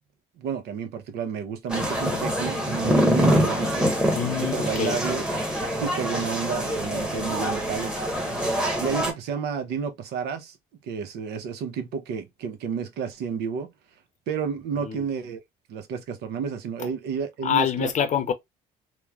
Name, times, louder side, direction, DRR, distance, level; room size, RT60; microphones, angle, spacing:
voice 1, 0.4-3.9 4.4-5.3 5.8-8.0 8.8-10.6 10.8-13.7 14.3-15.4 15.7-17.9, right 6 dB, 80° right, 0.7 m, -31 dB
sound 1, 1.7-9.1, equal, 5° right, 1.0 m, -25 dB
voice 2, 4.1-5.0 14.8-15.1 16.8-16.9 17.4-18.3, left 9 dB, 45° left, 0.6 m, -26 dB
3.0 x 2.1 x 2.3 m
cardioid pair, 110°, 17 cm